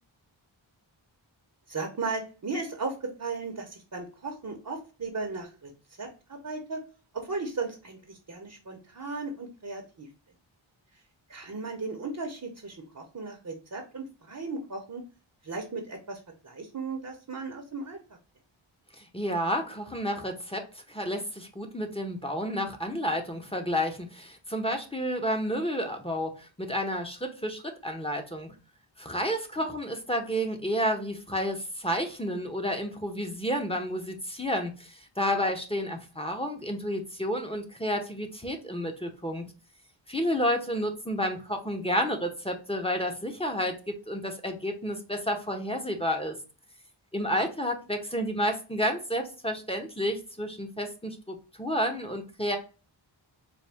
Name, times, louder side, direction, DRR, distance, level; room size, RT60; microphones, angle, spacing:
voice 1, 1.7-5.7 6.0-6.8 7.1-10.1 11.3-15.0 15.4-18.0 29.6-29.7 47.3-47.4, right 3 dB, 40° right, 3 dB, 0.8 m, -36 dB
voice 2, 19.0-28.5 29.0-39.4 40.1-46.4 47.1-52.6, equal, 10° left, 4 dB, 0.8 m, -30 dB
4.2 x 2.2 x 3.4 m, 0.34 s
wide cardioid pair, 40°, 49 cm